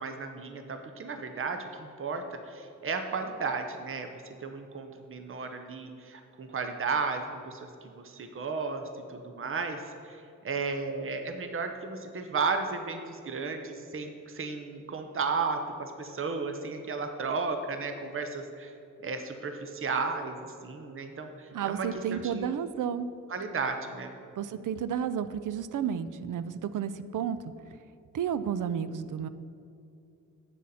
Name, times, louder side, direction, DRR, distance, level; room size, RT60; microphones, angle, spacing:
voice 1, 0.0-18.7 19.0-22.6 23.3-24.1, right 4 dB, 40° right, 6 dB, 0.7 m, -34 dB
voice 2, 21.5-23.1 24.4-27.4 28.1-29.3, right 8 dB, 75° right, 14 dB, 0.5 m, -32 dB
9.0 x 6.2 x 4.1 m, 2.6 s
cardioid pair, 75°, 32 cm